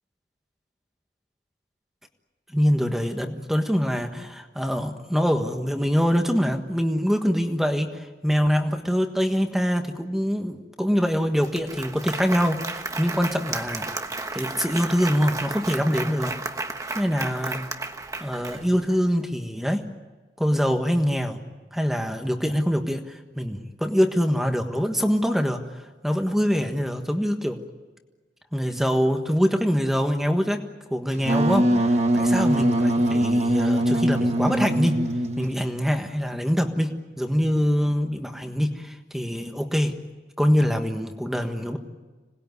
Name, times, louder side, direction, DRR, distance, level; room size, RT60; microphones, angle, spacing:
voice 1, 2.5-13.9 14.3-16.4 16.9-17.6 18.2-19.9 20.4-21.4 21.7-25.6 26.0-27.6 28.5-30.6 30.9-35.0 35.4-40.0 40.4-41.8, equal, ahead, 5 dB, 1.4 m, -24 dB
Applause, 11.1-11.2 11.4-19.0, right 3 dB, 20° right, 1.2 m, -33 dB
Wind instrument woodwind instrument, 31.2-35.7, right 1 dB, 35° right, 1.3 m, -22 dB
26.5 x 20.0 x 9.6 m, 1.3 s
head